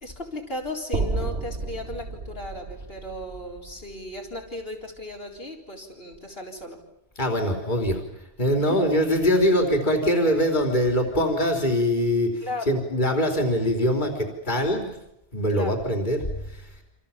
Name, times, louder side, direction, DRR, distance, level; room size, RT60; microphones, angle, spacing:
voice 1, 0.0-6.8 8.6-8.9 12.4-12.7 15.5-15.8, left 1 dB, 60° left, -1 dB, 4.3 m, -36 dB
sound 1, 0.9-5.1, right 3 dB, 85° right, 2.5 m, -32 dB
voice 2, 7.2-8.0 8.4-14.9 15.3-16.7, equal, 45° left, 3 dB, 4.1 m, -23 dB
28.5 x 27.5 x 7.4 m, 0.86 s
omnidirectional pair, 1.1 m